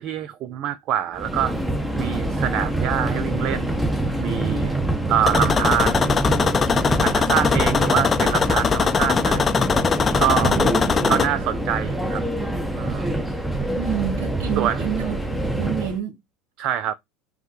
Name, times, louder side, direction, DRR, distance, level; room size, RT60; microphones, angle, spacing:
voice 1, 0.0-1.5 2.0-3.8 4.2-4.8 5.1-6.1 7.0-9.5 10.2-10.5 11.1-12.2 12.8-13.1 14.6-14.8 16.6-16.9, right 11 dB, 55° right, 0.4 m, -25 dB
Subway metro underground, 1.1-16.0, right 1 dB, 5° right, 0.9 m, -25 dB
sound 1, 5.2-11.3, left 6 dB, 25° left, 0.6 m, -21 dB
voice 2, 10.4-11.2 13.8-16.2, right 11 dB, 70° right, 1.1 m, -29 dB
5.4 x 2.2 x 3.1 m
hypercardioid pair, 80°, 0 cm